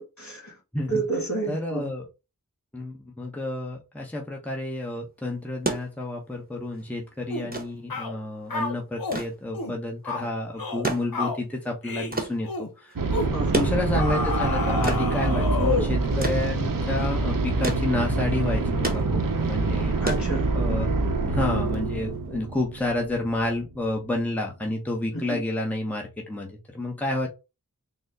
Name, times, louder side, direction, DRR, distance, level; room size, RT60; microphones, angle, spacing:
voice 1, 0.2-0.5 0.9-1.9 13.1-13.7 20.0-20.5 25.1-25.4, right 2 dB, 55° left, 1.9 m, -30 dB
voice 2, 0.7-1.1 1.5-2.1 2.7-13.0 13.5-20.0 20.5-20.9 21.3-27.3, left 2 dB, 5° left, 0.9 m, -30 dB
sound 1, 5.4-20.9 22.2-22.3, right 2 dB, 25° right, 0.9 m, -34 dB
sound 2, 7.3-7.5 7.9-8.1 8.5-9.2 9.5-9.8 10.0-10.3 10.6-10.9 11.1-11.4 11.8-12.1 12.4-12.7 13.1-13.3 13.9-16.0, left 3 dB, 85° left, 0.7 m, -29 dB
sound 3, 13.0-23.7, right 3 dB, 70° right, 0.7 m, -26 dB
4.0 x 2.1 x 3.4 m
wide cardioid pair, 45°, 35 cm